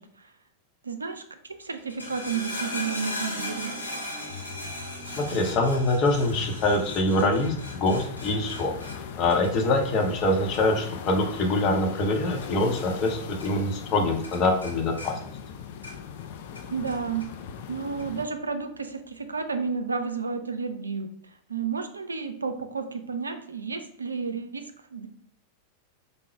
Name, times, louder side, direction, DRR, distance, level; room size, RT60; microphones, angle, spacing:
voice 1, 0.8-1.2 1.5-3.7 16.7-17.2 17.7-21.1 21.5-24.6 24.9-25.1, right 5 dB, 75° right, 8 dB, 0.4 m, -31 dB
sound 1, 1.8-13.1 13.4-14.0 14.2-16.2 16.5-17.3 18.0-18.1, left 1 dB, 85° left, 1.0 m, -38 dB
voice 2, 5.2-8.7 9.2-15.2, left 2 dB, 35° left, 2 dB, 0.7 m, -24 dB
sound 2, 6.2-18.3, left 7 dB, 50° left, 0.3 m, -40 dB
3.7 x 2.0 x 4.3 m, 0.64 s
figure-of-eight pair, 90°, 0 cm